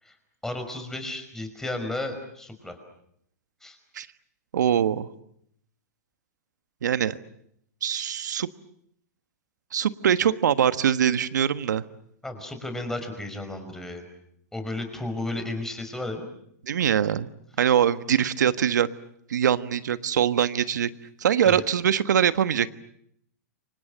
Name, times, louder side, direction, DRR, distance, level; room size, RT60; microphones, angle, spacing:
voice 1, 0.4-2.8 3.6-3.8 12.2-14.0 14.5-16.3 21.4-21.6, left 2 dB, 5° left, 6 dB, 5.3 m, -33 dB
voice 2, 4.5-5.1 6.8-7.2 7.8-8.5 9.7-11.8 16.6-17.3 17.6-18.9 19.3-20.9 21.2-22.7, right 9 dB, 80° right, 13 dB, 1.4 m, -23 dB
29.5 x 25.0 x 7.5 m, 0.72 s
hypercardioid pair, 130°, 10 cm